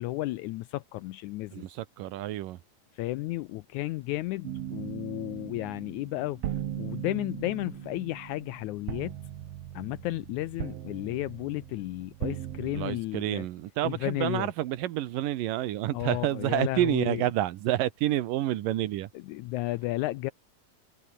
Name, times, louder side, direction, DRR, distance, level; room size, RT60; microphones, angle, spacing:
voice 1, 0.0-1.7 2.9-6.4 6.8-9.2 9.7-13.5 13.8-14.5 15.9-17.2 19.1-20.3, left 18 dB, 80° left, 1.8 m, -33 dB
voice 2, 1.5-2.6 12.7-19.1, right 14 dB, 80° right, 2.7 m, -29 dB
sound 1, 4.4-13.0, right 11 dB, 60° right, 2.0 m, -39 dB
omnidirectional pair, 3.9 m